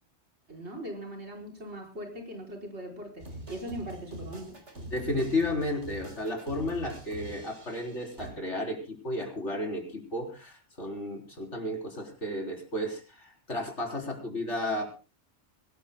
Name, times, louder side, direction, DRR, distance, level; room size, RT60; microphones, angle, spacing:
voice 1, 0.5-4.6, right 1 dB, 70° right, 1 dB, 5.0 m, -40 dB
sound 1, 3.2-8.3, right 1 dB, 90° right, 4.0 m, -44 dB
voice 2, 4.9-14.8, left 1 dB, 85° left, 3 dB, 4.3 m, -33 dB
23.5 x 18.5 x 2.2 m, 0.33 s
omnidirectional pair, 1.2 m